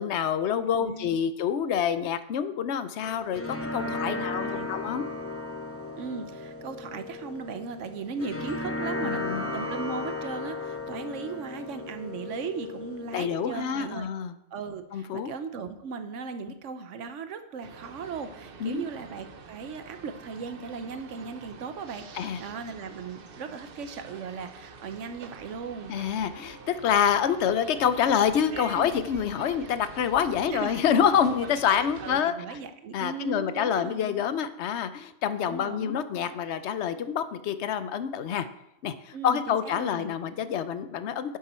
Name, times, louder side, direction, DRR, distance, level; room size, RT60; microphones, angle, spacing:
voice 1, 0.0-5.1 9.0-9.5 13.1-14.3 14.9-15.3 18.6-18.8 22.1-22.4 25.9-32.6 32.9-38.5 38.8-41.4, left 8 dB, 70° left, 12 dB, 0.9 m, -27 dB
voice 2, 0.8-1.2 3.8-4.7 6.0-9.2 9.5-14.1 14.5-26.0 28.7-28.9 30.5-30.9 31.6-34.2 35.4-36.0 39.1-40.2, right 5 dB, 90° right, 9 dB, 1.2 m, -37 dB
sound 1, 3.0-14.0, left 2 dB, 10° left, 1.0 m, -35 dB
sound 2, 17.6-32.2, right 4 dB, 55° right, 0.9 m, -46 dB
10.5 x 7.5 x 4.3 m, 0.83 s
omnidirectional pair, 1.2 m